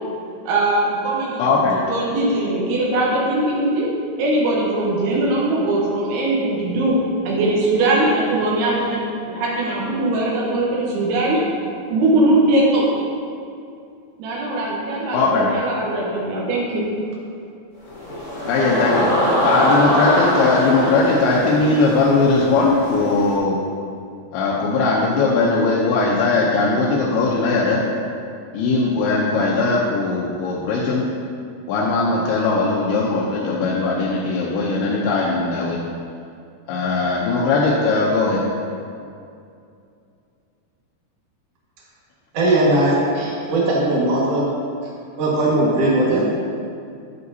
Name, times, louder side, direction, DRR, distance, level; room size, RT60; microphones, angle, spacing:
voice 1, 0.5-1.5 1.9-3.9 4.2-7.0 7.2-9.0 9.3-11.4 11.9-12.9 14.2-16.9, right 2 dB, 85° right, -4 dB, 3.1 m, -20 dB
voice 2, 1.4-1.8 15.1-15.5 18.5-19.1 19.4-23.6 24.3-27.8 28.5-31.0 31.7-35.8 36.7-38.4, left 3 dB, 85° left, -5 dB, 2.7 m, -19 dB
sound 1, 17.8-23.4, equal, 45° left, 1.6 m, -22 dB
voice 3, 42.3-44.5 45.2-46.2, right 1 dB, 50° right, -6 dB, 2.2 m, -18 dB
9.4 x 8.2 x 2.7 m, 2.4 s
omnidirectional pair, 4.5 m